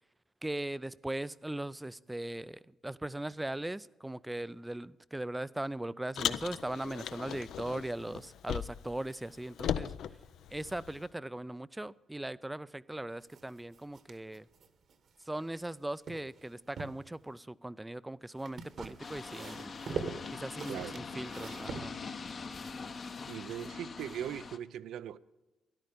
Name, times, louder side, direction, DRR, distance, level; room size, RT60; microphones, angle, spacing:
voice 1, 0.4-9.9 10.5-14.5 15.2-19.7 20.3-22.0, right 1 dB, 10° right, 0.4 m, -39 dB
Car, 6.2-9.0 9.2-11.0, left 9 dB, 75° left, 0.5 m, -37 dB
sound 1, 13.3-15.7 16.0-17.0 18.4-22.5, right 5 dB, 60° right, 1.3 m, -43 dB
sound 2, 19.0-24.6, left 4 dB, 45° left, 0.8 m, -43 dB
voice 2, 23.3-25.2, right 10 dB, 80° right, 0.4 m, -40 dB
13.5 x 10.5 x 5.1 m
cardioid pair, 90°, 0 cm